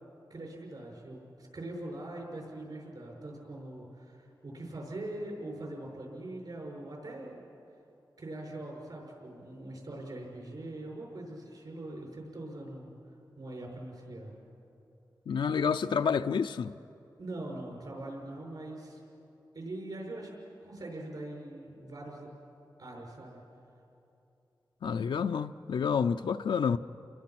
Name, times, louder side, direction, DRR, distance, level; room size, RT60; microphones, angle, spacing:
voice 1, 0.3-7.4 8.2-12.9 13.4-14.3 17.2-19.0 19.5-20.3 20.6-22.3 22.8-23.4, right 1 dB, 60° right, 6.3 m, -42 dB
voice 2, 15.3-16.7 24.8-26.8, left 6 dB, 85° left, 0.4 m, -29 dB
29.5 x 22.0 x 6.0 m
wide cardioid pair, 90°, 8 cm